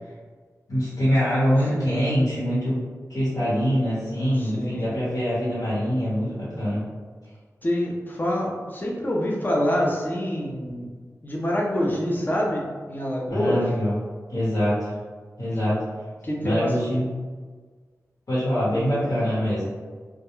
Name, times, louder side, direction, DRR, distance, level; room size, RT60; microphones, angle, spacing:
voice 1, 0.7-2.8 3.1-6.8 13.3-14.0 14.3-14.9 15.4-15.8 16.4-17.1 18.3-19.7, equal, 70° left, -10 dB, 1.1 m, -24 dB
voice 2, 1.7-2.0 4.4-4.9 7.6-10.9 11.2-13.6 16.2-16.7 18.6-19.0, equal, 30° left, -3 dB, 0.5 m, -26 dB
2.3 x 2.1 x 3.0 m, 1.5 s
wide cardioid pair, 90°, 6 cm